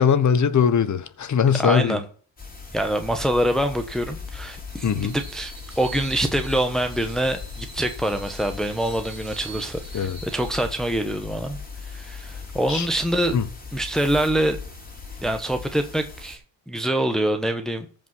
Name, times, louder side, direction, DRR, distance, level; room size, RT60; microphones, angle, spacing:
voice 1, 0.0-2.0 4.8-5.1 9.9-10.2 12.7-12.9 13.3-13.5, left 7 dB, 40° left, 1.3 m, -20 dB
voice 2, 1.5-2.0 2.7-11.6 11.9-13.4 13.7-14.6 15.2-16.4 16.7-17.9, right 1 dB, ahead, 1.1 m, -25 dB
sound 1, 2.4-16.4, left 5 dB, 20° left, 3.3 m, -38 dB
Screech, 4.7-10.7, right 5 dB, 50° right, 3.0 m, -44 dB
14.5 x 5.4 x 5.6 m
cardioid pair, 110°, 45 cm